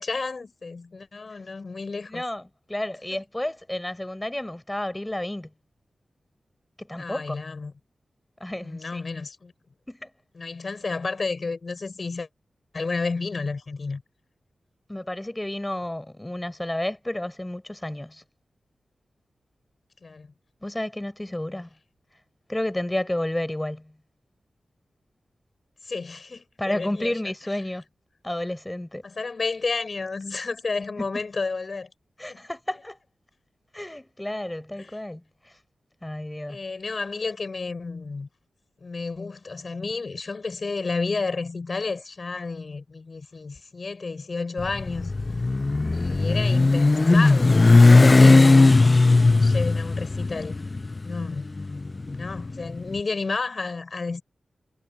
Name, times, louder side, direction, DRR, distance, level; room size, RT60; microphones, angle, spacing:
voice 1, 0.0-2.2 3.1-3.2 7.0-7.7 8.6-9.5 10.3-12.3 12.7-14.0 20.0-20.3 25.8-27.2 29.0-31.9 32.3-32.5 34.8-35.0 36.5-38.3 38.8-45.1 45.9-48.5 49.0-50.6 51.0-51.4 52.1-54.2, left 4 dB, 55° left, 5.0 m, -31 dB
voice 2, 2.1-2.4 2.7-5.5 6.8-7.4 8.4-9.0 9.9-10.1 14.9-18.2 20.6-21.7 22.5-23.9 26.6-27.8 28.2-29.0 31.0-31.1 32.2-33.0 33.7-35.2 36.0-36.6, left 1 dB, 15° left, 4.6 m, -31 dB
Motorcycle, 44.6-52.8, left 3 dB, 35° left, 0.5 m, -17 dB
wide cardioid pair, 70°, 0 cm